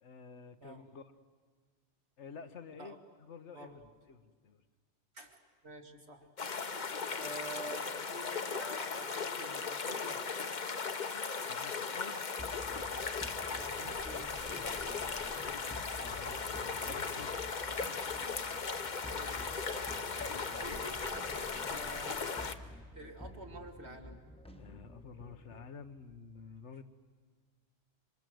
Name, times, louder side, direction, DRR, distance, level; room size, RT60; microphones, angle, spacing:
voice 1, 0.0-1.0 2.2-3.8 4.1-4.6 11.5-12.2 15.4-17.4 24.6-26.8, left 5 dB, 85° left, 9 dB, 1.5 m, -51 dB
voice 2, 5.6-6.3 7.2-10.4 13.6-15.1 19.1-19.6 20.6-21.3 21.7-22.3 22.9-24.2, right 1 dB, 70° right, 3 dB, 2.5 m, -48 dB
sound 1, 6.4-22.5, left 5 dB, 45° left, 1.0 m, -37 dB
sound 2, 12.4-25.7, left 1 dB, 5° left, 1.1 m, -50 dB
27.0 x 25.0 x 7.8 m, 1.6 s
omnidirectional pair, 1.2 m